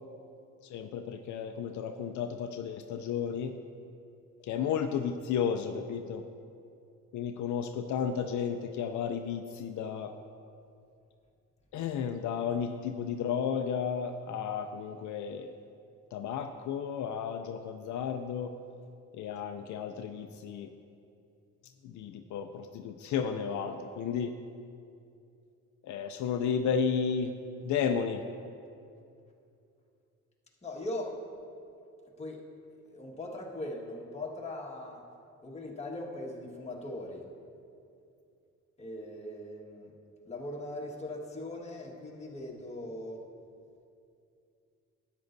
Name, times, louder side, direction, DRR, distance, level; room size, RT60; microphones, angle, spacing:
voice 1, 0.6-3.5 4.4-6.3 7.1-10.1 11.7-15.5 16.1-18.5 19.1-20.7 21.8-24.3 25.8-27.3 27.6-28.2, left 7 dB, 75° left, 6 dB, 0.5 m, -33 dB
voice 2, 30.6-31.2 32.2-35.0 35.4-37.3 38.8-39.9 40.3-43.2, left 1 dB, 20° left, -2 dB, 1.6 m, -40 dB
13.0 x 9.1 x 2.7 m, 2.5 s
cardioid pair, 90°, 30 cm